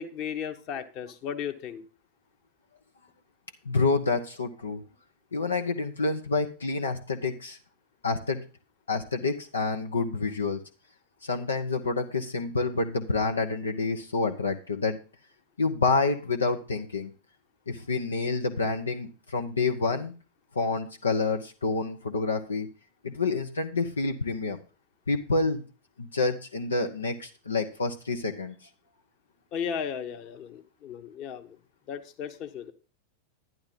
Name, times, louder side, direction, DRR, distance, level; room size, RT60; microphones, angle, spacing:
voice 1, 0.0-1.8 29.5-31.6 31.9-32.7, left 8 dB, 40° left, 7 dB, 1.3 m, -35 dB
voice 2, 3.6-4.8 5.3-7.6 8.0-8.4 8.9-10.6 11.2-15.0 15.6-17.1 17.7-20.1 20.5-22.7 23.0-24.6 25.1-25.6 26.0-28.5, left 3 dB, 75° left, 5 dB, 1.0 m, -28 dB
11.0 x 10.5 x 3.9 m, 0.35 s
figure-of-eight pair, 90°, 0 cm